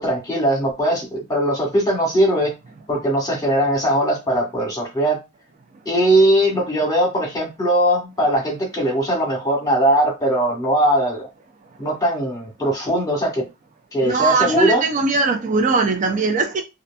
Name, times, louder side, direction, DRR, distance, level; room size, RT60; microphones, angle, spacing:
voice 1, 0.0-2.5 2.9-5.2 5.8-11.2 11.8-13.4 13.9-14.8, right 1 dB, 15° left, 1.1 m, -20 dB
voice 2, 14.0-16.6, right 4 dB, 35° right, 0.4 m, -20 dB
2.7 x 2.4 x 2.2 m
head